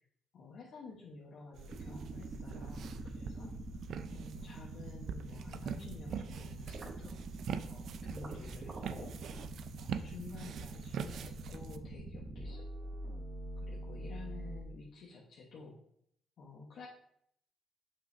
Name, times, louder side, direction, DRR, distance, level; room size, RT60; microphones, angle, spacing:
voice 1, 0.3-3.6 4.1-7.2 7.7-9.4 9.7-13.0 13.6-15.8 16.4-16.9, left 4 dB, 65° left, -4 dB, 1.2 m, -51 dB
sound 1, 1.5-11.8, right 7 dB, 70° right, 0.4 m, -44 dB
sound 2, 1.7-14.6, right 2 dB, 40° right, 1.0 m, -44 dB
7.2 x 5.4 x 2.7 m, 0.71 s
cardioid pair, 90°, 0 cm